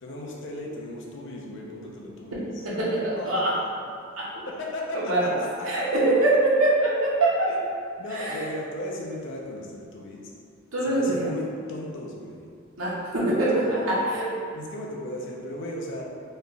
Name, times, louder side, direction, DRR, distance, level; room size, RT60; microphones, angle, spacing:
voice 1, 0.0-2.5 3.2-3.7 4.5-5.7 7.4-7.6 8.0-10.2 10.9-12.4 13.6-14.2 14.5-16.1, left 1 dB, 60° left, -2 dB, 0.6 m, -36 dB
voice 2, 2.6-3.6 4.2-4.3 4.9-5.4 5.6-7.5 8.1-8.5 10.7-11.3 12.8-14.3, right 2 dB, 80° right, -6 dB, 0.9 m, -23 dB
3.2 x 2.3 x 3.9 m, 2.3 s
head